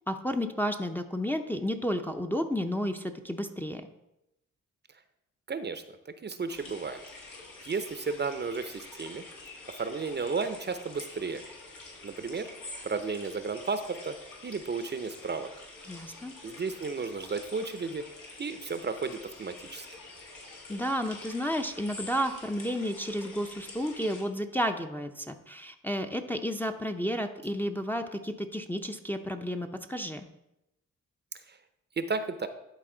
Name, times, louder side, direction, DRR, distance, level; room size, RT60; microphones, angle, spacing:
voice 1, 0.1-3.9 15.9-16.3 20.7-30.3, equal, 5° left, 4 dB, 0.6 m, -32 dB
voice 2, 5.5-7.0 7.6-9.2 9.8-11.4 12.0-12.5 12.8-14.2 14.4-15.5 16.4-18.0 18.4-19.9 31.5-31.6 32.0-32.5, right 4 dB, 35° right, 10 dB, 0.6 m, -33 dB
sound 1, 6.5-24.2, left 2 dB, 80° left, 1.9 m, -47 dB
11.5 x 4.1 x 3.8 m, 0.88 s
cardioid pair, 65°, 31 cm